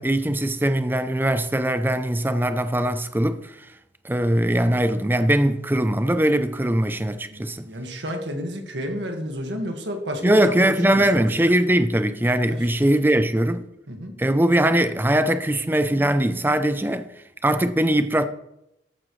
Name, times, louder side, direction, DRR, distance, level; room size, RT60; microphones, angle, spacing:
voice 1, 0.0-3.7 4.0-7.7 10.2-13.7 14.2-17.1 17.4-18.3, right 1 dB, 10° right, 0.5 m, -21 dB
voice 2, 7.3-11.3 12.5-12.6 13.9-14.2, equal, 75° right, 1.9 m, -31 dB
14.0 x 9.0 x 3.2 m
head